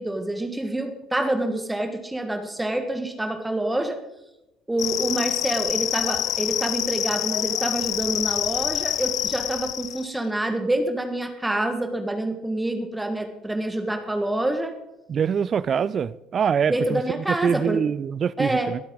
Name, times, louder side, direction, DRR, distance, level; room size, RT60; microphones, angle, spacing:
voice 1, 0.0-4.0 4.7-14.7 16.7-17.8 18.4-18.7, right 1 dB, 10° right, 6 dB, 1.8 m, -27 dB
sound 1, 4.8-10.1, left 13 dB, 55° left, 0.3 m, -27 dB
voice 2, 15.1-17.0 17.3-18.8, right 7 dB, 40° right, 18 dB, 0.5 m, -24 dB
22.0 x 8.4 x 4.0 m, 0.92 s
figure-of-eight pair, 55°, 0 cm